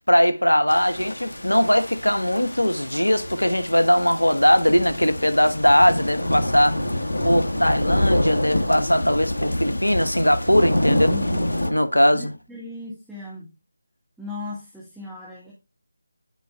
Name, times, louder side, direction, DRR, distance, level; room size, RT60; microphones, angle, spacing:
voice 1, 0.1-6.8 7.2-11.1 11.7-12.3, equal, 85° left, 1.1 m, -20 dB
sound 1, 0.7-11.7, left 1 dB, 70° left, 1.3 m, -27 dB
voice 2, 10.9-11.5 12.1-13.5 14.2-15.5, left 2 dB, ahead, 1.6 m, -36 dB
12.0 x 5.0 x 2.2 m
figure-of-eight pair, 160°, 0 cm